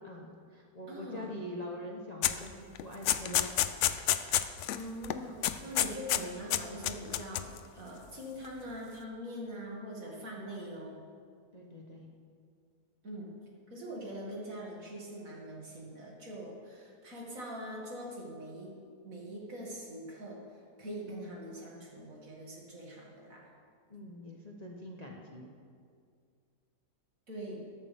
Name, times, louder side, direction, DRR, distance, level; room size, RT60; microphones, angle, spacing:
voice 1, 0.0-3.5 11.5-12.1 21.1-21.4 23.9-25.5, left 1 dB, 30° left, -1 dB, 0.8 m, -44 dB
voice 2, 0.9-1.3 4.7-11.0 13.0-13.4 13.7-18.7 19.0-20.4 20.8-23.5 27.3-27.7, equal, 60° right, -3 dB, 2.6 m, -43 dB
sound 1, 2.2-2.4 2.8-4.8 5.0-5.2 5.4-6.2 6.5-7.6, left 11 dB, 70° left, 0.7 m, -29 dB
13.0 x 13.0 x 3.5 m, 2.2 s
omnidirectional pair, 1.7 m